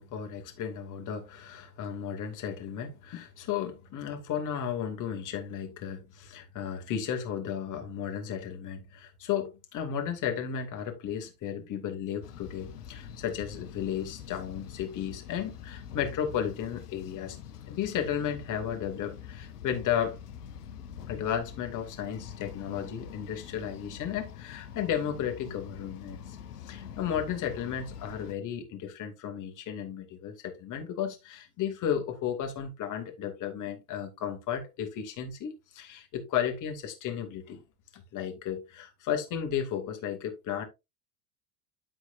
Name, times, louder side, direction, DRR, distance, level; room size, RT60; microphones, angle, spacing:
voice 1, 0.0-20.2 21.1-26.4 26.6-37.6 37.9-40.6, left 8 dB, 40° left, 2.4 m, -34 dB
sound 1, 12.2-28.3, left 8 dB, 75° left, 1.1 m, -45 dB
13.0 x 4.6 x 2.6 m
figure-of-eight pair, 80°, 47 cm